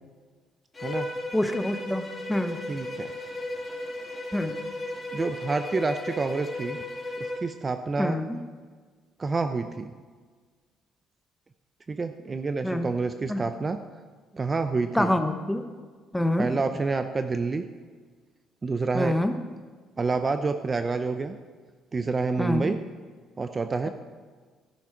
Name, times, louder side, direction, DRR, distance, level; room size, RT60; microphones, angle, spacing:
Bowed string instrument, 0.7-7.5, left 2 dB, 20° left, 2.9 m, -35 dB
voice 1, 1.3-2.0 2.3-2.6 4.3-4.6 8.0-8.4 12.6-12.9 13.3-13.5 14.9-15.6 16.1-16.5 18.9-19.3 22.4-22.7, left 1 dB, 5° left, 7 dB, 1.0 m, -26 dB
voice 2, 2.7-3.1 5.1-6.8 7.2-8.2 9.2-9.9 11.9-13.8 14.3-15.1 16.4-17.7 18.6-19.2 20.0-21.4 21.9-22.8 23.4-23.9, right 4 dB, 30° right, 9 dB, 0.6 m, -28 dB
13.5 x 11.0 x 4.5 m, 1.5 s
cardioid pair, 105°, 0 cm